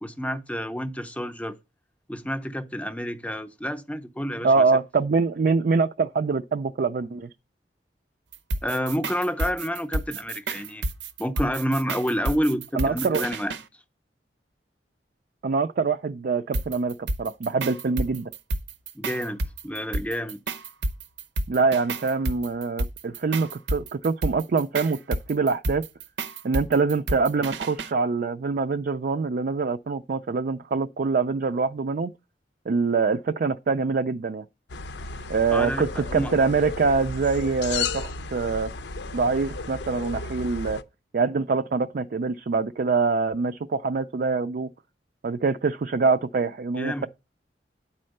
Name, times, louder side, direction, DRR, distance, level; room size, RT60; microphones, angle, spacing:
voice 1, 0.0-1.6 2.1-4.7 8.6-10.8 11.2-13.6 18.9-20.4 35.5-36.3 46.8-47.1, equal, 10° left, 0.6 m, -29 dB
voice 2, 4.4-7.3 12.7-13.2 15.4-18.3 21.5-25.8 26.4-32.1 32.7-34.4 35.3-38.7 39.1-40.8 41.1-44.7 45.2-47.1, right 4 dB, 55° right, 0.4 m, -24 dB
sound 1, 8.3-13.6 16.5-27.9, right 2 dB, 85° right, 0.7 m, -30 dB
sound 2, 34.7-40.8, left 4 dB, 75° left, 0.6 m, -34 dB
9.4 x 4.3 x 6.4 m
head